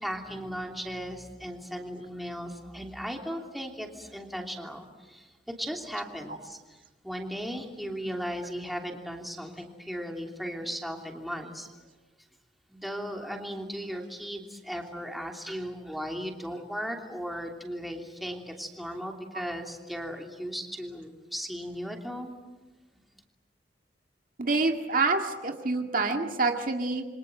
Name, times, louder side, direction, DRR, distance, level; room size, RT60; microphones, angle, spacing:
voice 1, 0.0-11.8 12.7-22.3, equal, ahead, 2 dB, 3.0 m, -37 dB
voice 2, 24.4-27.1, right 3 dB, 50° right, 4 dB, 2.0 m, -27 dB
28.0 x 25.0 x 7.8 m, 1.2 s
head